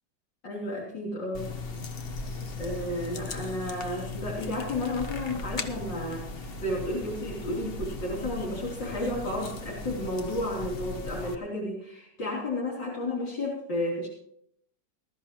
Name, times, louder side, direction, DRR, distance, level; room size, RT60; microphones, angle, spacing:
voice 1, 0.4-1.5 2.6-14.1, left 1 dB, 80° left, -4 dB, 4.0 m, -32 dB
sound 1, 1.3-11.3, left 3 dB, 40° left, 1.0 m, -38 dB
20.0 x 13.0 x 3.0 m, 0.71 s
omnidirectional pair, 1.9 m